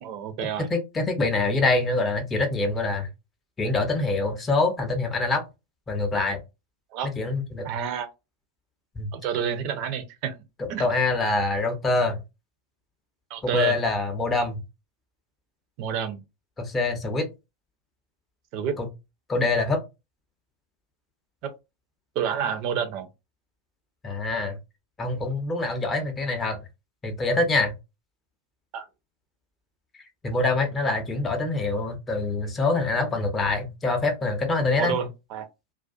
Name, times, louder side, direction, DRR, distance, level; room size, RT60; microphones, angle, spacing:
voice 1, 0.0-0.7 6.9-7.1 7.6-8.1 9.1-10.3 10.7-10.9 13.3-13.8 15.8-16.2 18.5-18.8 21.4-21.5 22.2-23.1 28.7-28.9 34.8-35.4, right 8 dB, 40° right, 0.6 m, -29 dB
voice 2, 0.7-3.1 3.6-5.4 5.9-6.4 7.0-7.7 9.0-9.1 10.6-12.2 13.4-14.6 16.6-17.3 18.8-18.9 19.3-19.8 24.0-24.6 25.0-26.6 27.0-27.7 30.2-35.0, left 3 dB, 20° left, 0.6 m, -25 dB
2.4 x 2.3 x 2.3 m
figure-of-eight pair, 90°, 0 cm